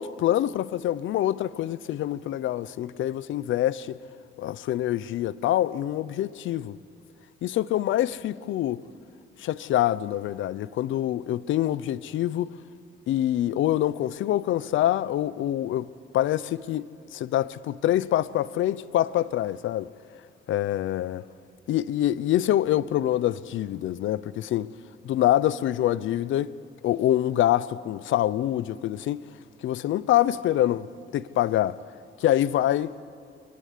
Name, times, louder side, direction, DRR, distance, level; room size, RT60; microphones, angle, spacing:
voice 1, 0.0-4.0 4.4-6.8 7.4-8.8 9.4-12.5 13.1-15.9 16.1-19.9 20.5-21.2 21.7-24.7 25.0-26.5 26.8-29.2 29.6-30.9 31.1-31.8 32.2-33.0, left 12 dB, 75° left, 0.8 m, -25 dB
30.0 x 23.0 x 8.4 m
cardioid pair, 90°, 20 cm